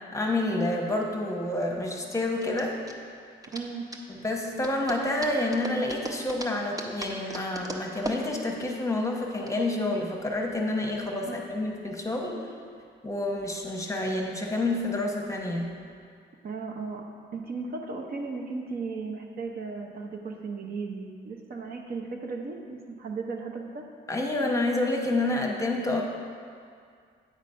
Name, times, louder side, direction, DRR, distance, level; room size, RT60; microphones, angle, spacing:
voice 1, 0.1-2.8 4.1-12.3 13.0-15.7 24.1-26.0, left 2 dB, 15° left, 0 dB, 1.0 m, -28 dB
sound 1, 0.8-9.5, right 2 dB, 20° right, 0.7 m, -40 dB
voice 2, 3.5-3.9 11.3-11.4 12.7-12.8 16.4-17.0 17.3-23.8, right 4 dB, 50° right, 2 dB, 0.8 m, -36 dB
8.4 x 4.1 x 5.3 m, 2.2 s
cardioid pair, 90°, 20 cm